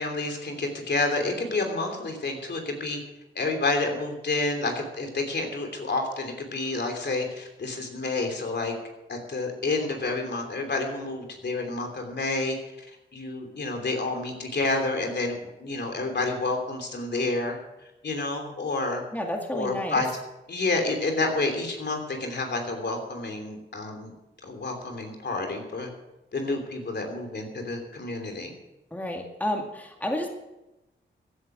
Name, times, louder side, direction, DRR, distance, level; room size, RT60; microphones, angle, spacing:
voice 1, 0.0-3.0 3.3-8.7 9.1-12.5 13.1-17.6 18.0-19.0 19.5-20.1 20.5-24.1 24.4-25.9 26.3-28.5, left 3 dB, 60° left, 4 dB, 3.1 m, -29 dB
voice 2, 19.1-20.0 28.9-30.3, left 1 dB, 10° left, 2 dB, 2.1 m, -30 dB
15.5 x 9.5 x 6.2 m, 0.96 s
wide cardioid pair, 90°, 20 cm